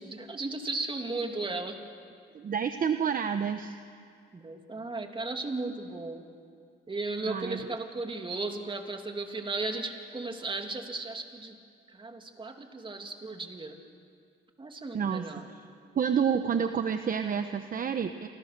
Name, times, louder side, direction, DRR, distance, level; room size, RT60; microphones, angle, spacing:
voice 1, 0.0-1.8 4.3-6.2 6.9-11.6 11.9-13.8 14.6-15.5, right 3 dB, 25° right, 4 dB, 2.9 m, -35 dB
voice 2, 2.3-3.7 7.3-7.6 14.9-15.4 15.9-18.3, right 7 dB, 45° right, 8 dB, 1.1 m, -29 dB
29.5 x 24.5 x 6.8 m, 2.3 s
cardioid pair, 90°, 20 cm